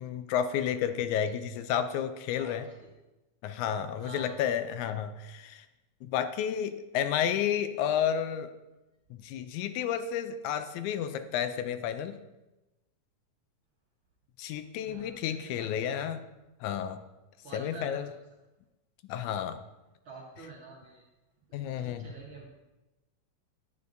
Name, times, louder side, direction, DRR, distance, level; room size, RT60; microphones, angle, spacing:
voice 1, 0.0-2.7 3.4-5.7 6.0-8.5 9.1-12.2 14.4-16.2 16.6-17.0 17.5-18.1 19.1-19.6 21.5-22.1, left 9 dB, 80° left, 10 dB, 1.9 m, -31 dB
voice 2, 2.3-2.9 3.7-4.4 14.8-15.7 17.4-18.0 20.0-21.0 21.5-22.5, right 3 dB, 55° right, -3 dB, 1.5 m, -48 dB
9.6 x 9.0 x 2.6 m, 1.0 s
omnidirectional pair, 3.5 m